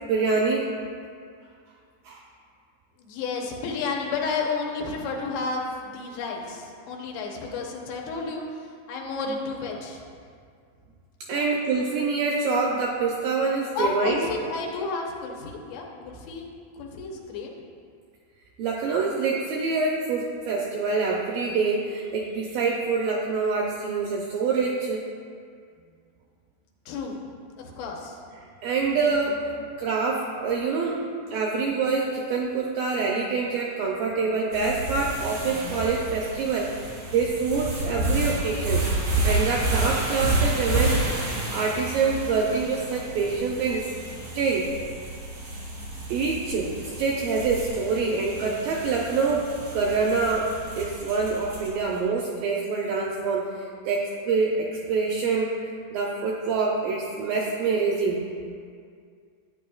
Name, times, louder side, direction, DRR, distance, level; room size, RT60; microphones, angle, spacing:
voice 1, 0.0-0.7 2.1-2.2 11.3-14.3 18.6-25.0 28.6-29.5 29.8-31.0 31.3-36.8 37.1-38.9 39.2-41.1 41.5-43.9 44.3-44.7 46.1-50.5 50.8-55.5 55.9-58.2, right 4 dB, 90° right, -2 dB, 2.0 m, -26 dB
voice 2, 3.0-10.0 11.3-11.4 13.7-17.5 26.9-27.2 27.6-28.2, left 4 dB, 80° left, 0 dB, 3.0 m, -32 dB
sound 1, 34.5-51.9, right 2 dB, 45° right, 3.1 m, -30 dB
11.5 x 9.2 x 2.3 m, 2.2 s
omnidirectional pair, 4.7 m